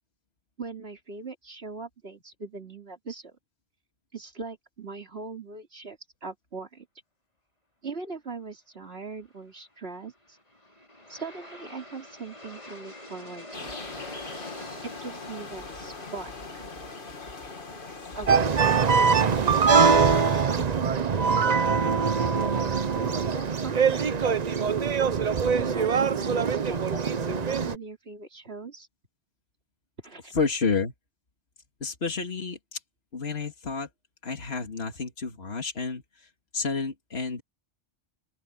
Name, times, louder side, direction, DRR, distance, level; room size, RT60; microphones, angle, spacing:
voice 1, 0.6-3.3 4.1-6.9 7.8-10.4 11.1-13.8 14.8-16.6 18.1-19.7 20.5-24.1 25.5-28.9 30.0-30.3, right 4 dB, 70° right, 3.6 m, -40 dB
Aircraft, 10.0-21.1, left 1 dB, 40° left, 4.7 m, -47 dB
Forest atmosphere with birds in the background, 13.5-20.5, left 3 dB, 55° left, 2.0 m, -41 dB
sound 1, 18.3-27.7, right 5 dB, 45° right, 0.8 m, -23 dB
voice 2, 30.3-30.9 31.8-32.8 33.1-33.9 34.2-36.3 36.5-37.4, left 4 dB, 75° left, 2.4 m, -30 dB
open air
omnidirectional pair, 1.1 m